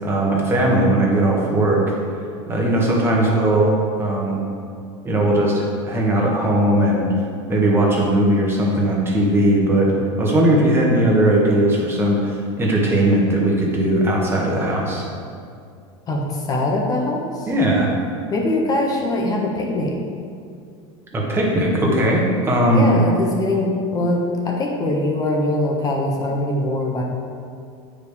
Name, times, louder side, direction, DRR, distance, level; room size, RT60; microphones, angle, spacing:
voice 1, 0.0-1.8 2.5-4.4 5.0-7.1 7.5-9.9 10.2-15.0 17.5-17.9 21.1-22.9, right 1 dB, 15° right, -3 dB, 1.4 m, -18 dB
voice 2, 16.1-17.5 18.3-20.0 22.7-27.0, left 1 dB, 25° left, 0 dB, 1.1 m, -22 dB
9.0 x 5.0 x 3.5 m, 2.3 s
supercardioid pair, 140°, 15 cm